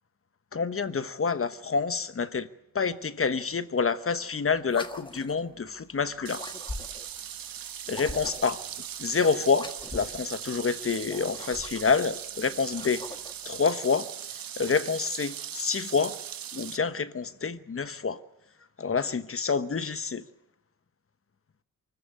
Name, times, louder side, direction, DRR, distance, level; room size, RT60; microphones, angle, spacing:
voice 1, 0.5-2.5 2.7-6.4 7.9-8.6 9.0-13.0 13.4-14.1 14.6-16.2 16.5-18.2 18.8-20.2, left 5 dB, 40° left, 1.1 m, -28 dB
sound 1, 4.6-5.5 6.3-7.2 7.9-8.6 9.5-10.2 11.0-12.0 12.6-13.5, left 2 dB, 15° left, 1.5 m, -41 dB
sound 2, 6.3-16.8, right 9 dB, 75° right, 1.0 m, -39 dB
24.0 x 14.0 x 9.5 m
cardioid pair, 75°, 35 cm